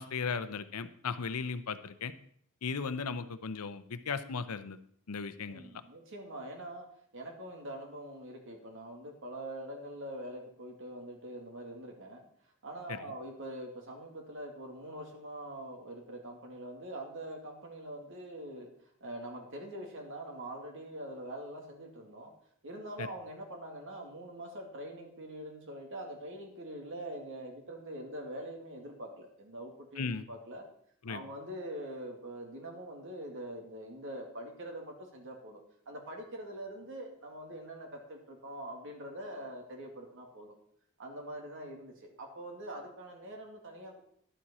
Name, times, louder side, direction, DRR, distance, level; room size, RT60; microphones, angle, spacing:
voice 1, 0.0-2.1 2.6-4.8 5.1-5.8 12.9-13.0 23.0-23.1 30.0-30.2 31.0-31.2, left 5 dB, 80° left, 12 dB, 0.7 m, -36 dB
voice 2, 5.4-6.9 7.1-18.7 19.0-22.3 22.6-30.6 31.1-40.5 41.0-44.0, right 1 dB, 60° right, 2 dB, 2.0 m, -44 dB
11.0 x 7.6 x 4.2 m, 0.65 s
head